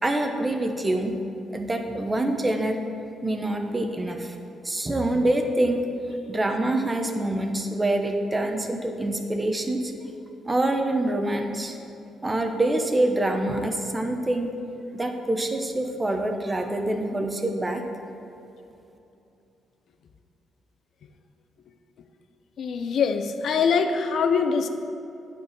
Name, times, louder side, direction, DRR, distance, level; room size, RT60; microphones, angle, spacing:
voice 1, 0.0-1.1 1.5-2.8 3.2-4.3 4.6-5.9 6.3-9.9 10.5-11.8 12.2-14.5 14.9-17.8, right 1 dB, 20° right, 4 dB, 1.0 m, -25 dB
voice 2, 22.6-24.7, left 5 dB, 65° left, 8 dB, 0.6 m, -23 dB
9.1 x 4.7 x 7.4 m, 2.9 s
cardioid pair, 90°, 0 cm